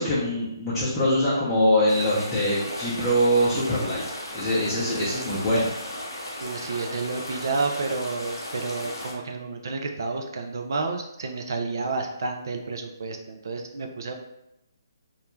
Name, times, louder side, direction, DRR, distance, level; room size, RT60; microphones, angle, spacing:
voice 1, 0.0-4.0 4.3-5.7, equal, 10° left, -12 dB, 0.7 m, -23 dB
sound 1, 1.9-9.1, left 1 dB, 75° left, 0.6 m, -36 dB
voice 2, 6.4-14.1, right 3 dB, 60° right, 3 dB, 0.4 m, -30 dB
2.3 x 2.1 x 3.1 m, 0.85 s
figure-of-eight pair, 140°, 2 cm